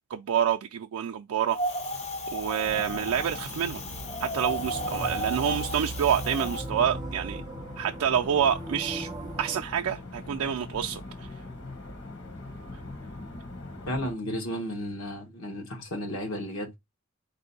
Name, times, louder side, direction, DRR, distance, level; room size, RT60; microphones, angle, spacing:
voice 1, 0.1-1.6 2.3-3.8 4.2-7.4 7.8-9.1 9.4-11.3, right 8 dB, 85° right, 0.4 m, -27 dB
Wind, 1.5-6.6, equal, 30° left, 0.5 m, -34 dB
sound 1, 2.6-14.1, equal, 50° left, 0.9 m, -40 dB
sound 2, 4.3-9.6, right 1 dB, 20° right, 0.4 m, -40 dB
voice 2, 13.9-16.8, equal, 80° left, 1.0 m, -33 dB
4.3 x 2.7 x 3.9 m
head